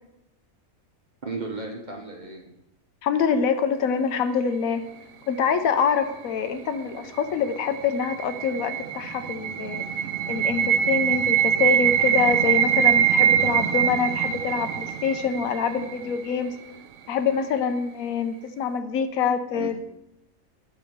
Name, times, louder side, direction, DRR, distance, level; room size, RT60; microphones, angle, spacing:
voice 1, 1.2-2.5 15.8-15.9 19.5-19.8, right 3 dB, 40° right, 2 dB, 0.8 m, -35 dB
voice 2, 3.0-4.8 5.3-9.8 10.3-16.6 17.1-19.7, left 6 dB, 80° left, 9 dB, 1.1 m, -25 dB
sound 1, 7.3-16.3, right 10 dB, 80° right, 1.0 m, -23 dB
10.5 x 3.5 x 5.0 m, 0.85 s
omnidirectional pair, 1.5 m